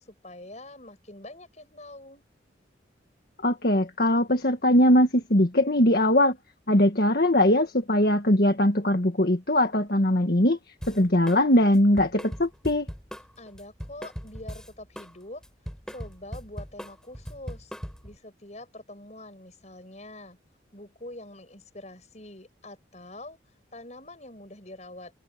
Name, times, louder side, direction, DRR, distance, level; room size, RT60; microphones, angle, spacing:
voice 1, 0.0-2.2 13.4-15.4 15.9-17.7 18.0-20.4 20.7-23.4 23.7-25.1, left 1 dB, 40° left, 7.8 m, -44 dB
voice 2, 3.4-6.4 6.7-10.6 10.9-12.9, left 1 dB, 55° left, 1.7 m, -21 dB
Drum kit, 10.8-11.4 11.7-15.1 15.4-18.2, equal, 5° left, 7.7 m, -39 dB
head